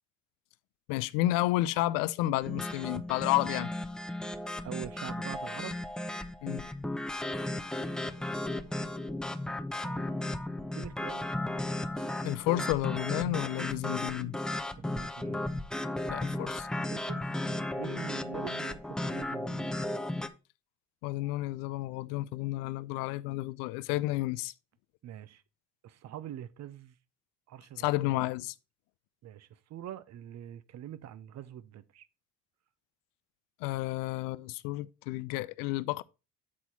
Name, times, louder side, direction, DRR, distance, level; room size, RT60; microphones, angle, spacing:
voice 1, 0.9-3.7 6.4-6.7 12.2-14.4 16.1-16.7 21.0-24.5 27.8-28.5 33.6-36.0, left 17 dB, 85° left, 0.5 m, -31 dB
sound 1, 2.4-20.3, left 1 dB, ahead, 0.7 m, -35 dB
voice 2, 4.6-5.8 7.7-8.8 9.7-10.1 10.7-11.3 14.8-15.4 16.9-19.8 25.0-25.4 25.8-27.0 27.5-28.2 29.2-32.1, right 11 dB, 55° right, 0.8 m, -45 dB
8.5 x 4.2 x 4.5 m
supercardioid pair, 95°, 33 cm